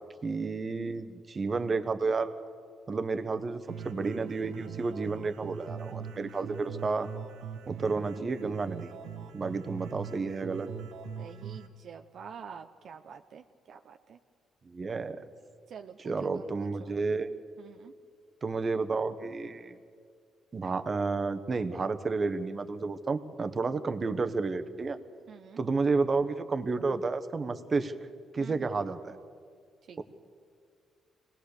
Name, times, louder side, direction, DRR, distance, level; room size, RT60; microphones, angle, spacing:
voice 1, 0.2-2.3 2.9-7.1 7.7-8.9 9.3-10.7 14.6-15.2 16.0-17.3 18.4-19.7 20.5-25.0 25.6-27.9 28.3-29.2, right 4 dB, 35° right, 10 dB, 1.3 m, -31 dB
sound 1, 3.7-11.7, right 7 dB, 85° right, 1.5 m, -41 dB
voice 2, 11.2-14.2 15.7-16.9 17.6-17.9 25.3-25.6 28.4-28.7 29.9-30.0, right 7 dB, 60° right, 6 dB, 0.8 m, -47 dB
25.5 x 18.5 x 6.8 m, 2.1 s
cardioid pair, 90°, 0 cm